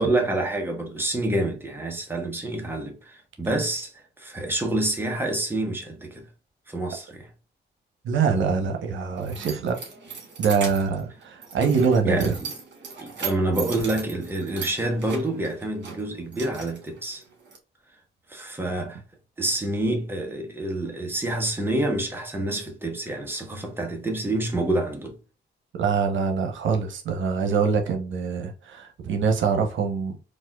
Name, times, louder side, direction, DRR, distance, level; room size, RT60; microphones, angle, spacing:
voice 1, 0.0-6.3 6.7-7.3 12.0-12.5 13.0-17.2 18.3-19.0 19.4-25.1, right 1 dB, 10° right, 0.9 m, -27 dB
voice 2, 8.0-9.7 10.4-12.4 25.8-30.3, right 5 dB, 80° right, 0.8 m, -24 dB
Keys jangling, 8.6-17.6, right 6 dB, 65° right, 1.7 m, -39 dB
4.1 x 2.5 x 2.2 m
cardioid pair, 110°, 19 cm